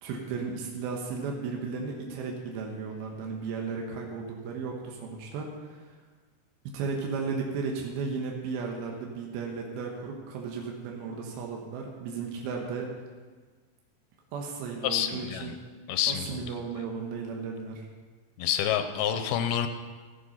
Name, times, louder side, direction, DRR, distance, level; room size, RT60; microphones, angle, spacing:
voice 1, 0.0-6.0 6.6-12.9 14.3-15.6 16.1-17.9, right 5 dB, 85° right, 0 dB, 3.1 m, -35 dB
voice 2, 14.8-15.5 15.9-16.4 18.4-19.7, left 9 dB, 85° left, 8 dB, 2.8 m, -28 dB
15.5 x 8.2 x 5.6 m, 1.4 s
omnidirectional pair, 4.3 m